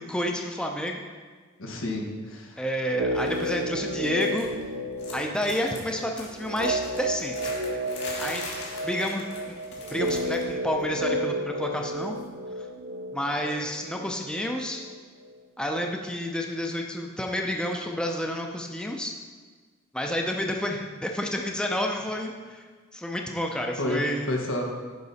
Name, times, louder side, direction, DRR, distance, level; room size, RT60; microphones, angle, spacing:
voice 1, 0.1-1.0 2.6-4.5 5.1-7.4 8.2-8.4 8.8-9.2 9.9-12.2 13.1-14.8 15.6-19.1 19.9-22.6 22.9-24.3, equal, 5° left, 2 dB, 0.5 m, -29 dB
voice 2, 1.6-2.6 23.8-24.6, left 1 dB, 90° left, 1 dB, 1.4 m, -30 dB
sound 1, 2.8-15.0 15.2-15.3, right 1 dB, 65° right, 0.5 m, -32 dB
sound 2, 3.2-3.6 3.9-4.7 5.0-10.5 10.8-11.1 12.2-12.3, left 3 dB, 55° left, 2.2 m, -42 dB
10.5 x 5.3 x 4.1 m, 1.5 s
head